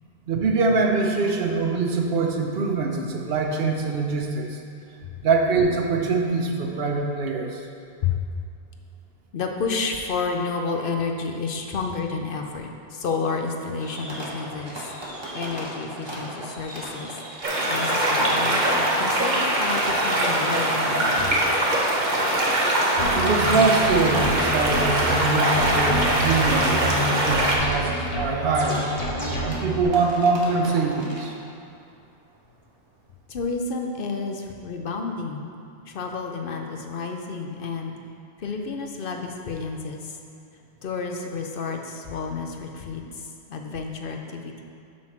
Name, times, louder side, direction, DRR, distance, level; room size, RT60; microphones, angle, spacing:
voice 1, 0.3-4.6 5.2-7.6 23.1-28.9 29.4-31.3, right 4 dB, 70° right, 2 dB, 1.0 m, -23 dB
voice 2, 9.3-14.9 15.3-21.4 33.3-35.5 35.9-37.9 38.4-40.2 40.8-44.6, left 4 dB, 65° left, 3 dB, 0.8 m, -30 dB
Fireworks, 13.8-31.6, right 1 dB, 25° right, 1.0 m, -37 dB
sound 1, 17.4-27.6, right 1 dB, 50° right, 1.1 m, -22 dB
sound 2, 23.0-29.8, left 1 dB, 40° left, 1.2 m, -29 dB
7.4 x 4.4 x 6.0 m, 2.5 s
omnidirectional pair, 1.0 m